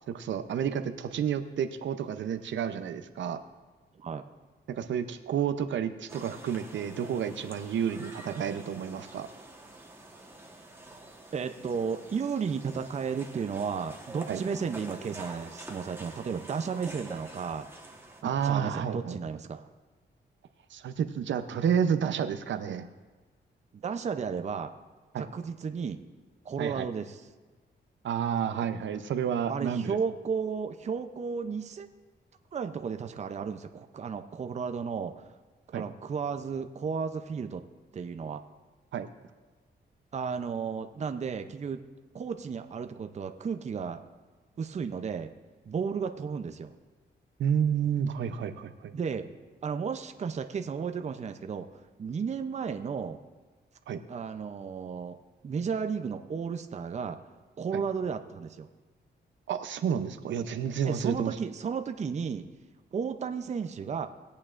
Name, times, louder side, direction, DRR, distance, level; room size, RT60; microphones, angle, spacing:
voice 1, 0.0-3.4 4.7-9.3 14.3-14.4 18.2-19.2 20.7-22.9 25.1-25.3 26.6-26.9 28.0-30.0 35.7-35.8 38.9-39.1 47.4-48.9 53.9-54.0 57.7-57.8 59.5-61.4, right 8 dB, 80° right, 9 dB, 0.6 m, -30 dB
sound 1, 6.1-18.2, right 2 dB, 10° right, 1.2 m, -47 dB
voice 2, 11.3-17.7 18.4-19.7 23.7-24.7 25.2-26.0 26.4-27.2 29.5-31.9 32.5-35.2 35.7-37.6 37.9-38.4 40.1-41.8 42.1-44.0 44.6-45.3 45.7-46.7 48.9-49.2 49.6-53.2 54.1-55.2 55.4-57.2 57.6-58.7 60.9-62.4 62.9-64.1, right 6 dB, 35° right, 7 dB, 0.5 m, -33 dB
19.0 x 8.5 x 2.5 m, 1.3 s
wide cardioid pair, 120°, 19 cm